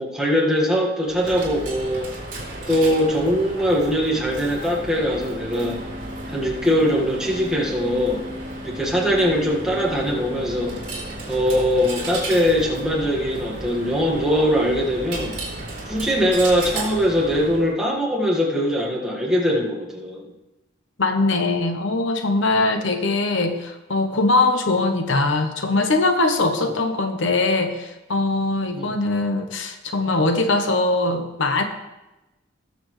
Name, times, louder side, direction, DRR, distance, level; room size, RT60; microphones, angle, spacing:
voice 1, 0.0-2.1 2.7-5.8 6.3-8.2 8.6-10.8 11.3-15.4 15.9-20.3 26.6-26.8 28.7-28.9, equal, 5° right, -4 dB, 1.6 m, -21 dB
Coin (dropping), 1.1-17.7, right 1 dB, 45° right, 3.1 m, -34 dB
voice 2, 21.0-31.6, left 2 dB, 70° left, 6 dB, 0.9 m, -21 dB
19.5 x 6.8 x 3.2 m, 1.0 s
head